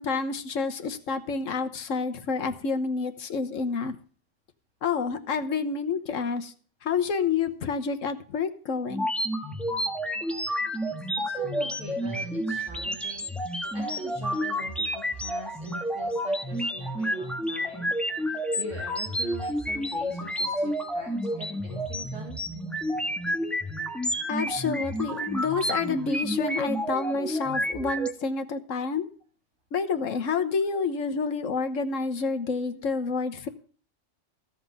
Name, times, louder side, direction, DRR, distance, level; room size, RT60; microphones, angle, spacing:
voice 1, 0.0-4.0 4.8-6.5 6.8-9.1 24.3-29.1 29.7-33.5, left 5 dB, 85° left, 7 dB, 1.5 m, -29 dB
sound 1, 8.9-28.1, equal, ahead, 1.3 m, -30 dB
voice 2, 11.4-17.8 18.3-22.4 27.9-28.0 32.7-32.8, right 2 dB, 80° right, -2 dB, 3.6 m, -43 dB
15.5 x 5.9 x 8.2 m, 0.41 s
omnidirectional pair, 1.3 m